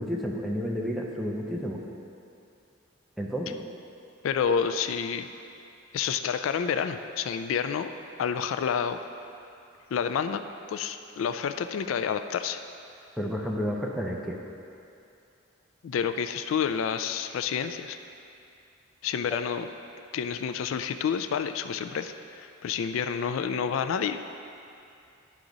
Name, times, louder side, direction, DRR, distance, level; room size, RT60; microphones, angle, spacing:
voice 1, 0.0-1.8 3.2-3.6 13.2-14.4, equal, ahead, -2 dB, 0.6 m, -31 dB
voice 2, 4.2-5.3 5.9-7.9 8.2-9.0 9.9-10.4 10.7-12.6 15.8-18.0 19.0-19.7 20.1-24.2, left 7 dB, 80° left, 9 dB, 0.3 m, -29 dB
11.5 x 4.9 x 3.9 m, 2.6 s
head